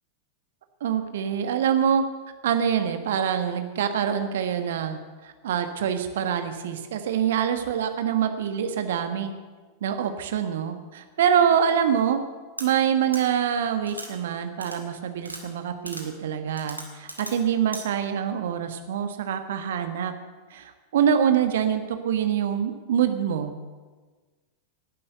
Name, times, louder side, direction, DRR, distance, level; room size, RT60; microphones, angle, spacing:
voice 1, 0.8-2.0 2.4-5.0 5.2-9.3 9.8-12.2 12.6-20.1 20.5-23.5, right 8 dB, 60° right, 8 dB, 1.5 m, -25 dB
sound 1, 12.6-12.7 13.1-13.2 13.9-14.1 14.6-14.8 15.2-15.4 15.9-16.0 16.6-17.3 17.7-17.8, right 1 dB, 85° right, 2.1 m, -37 dB
18.5 x 10.5 x 6.7 m, 1.4 s
figure-of-eight pair, 90°, 0 cm